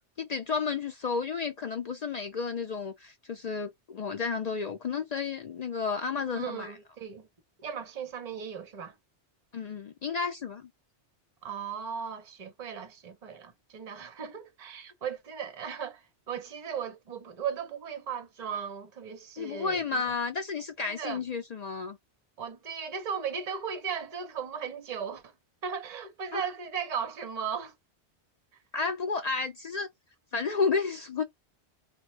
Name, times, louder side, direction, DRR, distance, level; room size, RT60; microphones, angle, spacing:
voice 1, 0.2-6.7 9.5-10.7 19.4-22.0 26.3-26.4 28.7-29.9 30.3-31.2, left 5 dB, 65° left, 0.4 m, -32 dB
voice 2, 6.3-7.3 7.6-8.9 11.4-20.1 20.8-21.2 22.4-25.3 25.6-27.7, right 7 dB, 40° right, 0.8 m, -37 dB
2.9 x 2.2 x 3.1 m
omnidirectional pair, 1.2 m